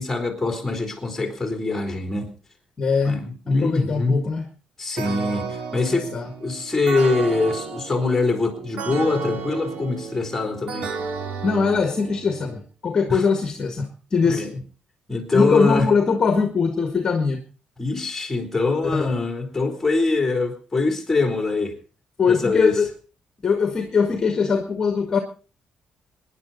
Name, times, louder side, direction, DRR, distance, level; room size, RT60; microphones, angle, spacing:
voice 1, 0.0-2.3 3.1-4.2 4.8-6.1 6.4-10.9 13.1-13.2 14.2-14.5 15.1-15.9 17.8-21.8 22.3-22.8, left 3 dB, 10° left, 4 dB, 3.7 m, -23 dB
voice 2, 2.8-3.2 3.5-4.5 6.1-6.3 11.4-14.5 15.3-17.4 18.8-19.1 22.2-22.9 23.4-25.2, left 5 dB, 30° left, 5 dB, 1.8 m, -21 dB
sound 1, 5.0-12.6, right 5 dB, 70° right, 2.1 m, -32 dB
26.0 x 10.5 x 4.1 m, 0.37 s
cardioid pair, 165°, 2 cm